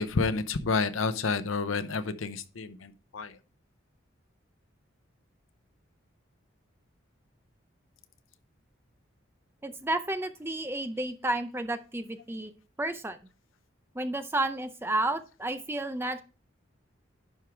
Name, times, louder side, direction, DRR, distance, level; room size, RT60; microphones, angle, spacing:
voice 1, 0.0-3.3, left 4 dB, 90° left, 12 dB, 0.7 m, -30 dB
voice 2, 9.6-13.2 13.9-16.2, right 2 dB, 10° right, 9 dB, 0.5 m, -31 dB
11.0 x 4.6 x 3.5 m, 0.35 s
head